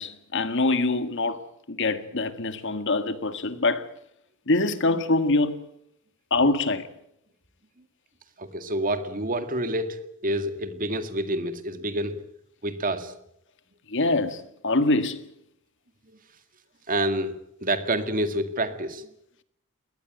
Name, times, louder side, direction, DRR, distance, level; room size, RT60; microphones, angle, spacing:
voice 1, 0.0-1.4 1.7-3.9 4.5-5.7 6.3-6.8 13.9-15.2, left 2 dB, 55° left, 1.8 m, -24 dB
voice 2, 8.4-12.2 12.6-13.1 16.9-19.1, right 1 dB, 40° right, 2.1 m, -28 dB
22.0 x 19.0 x 9.2 m
head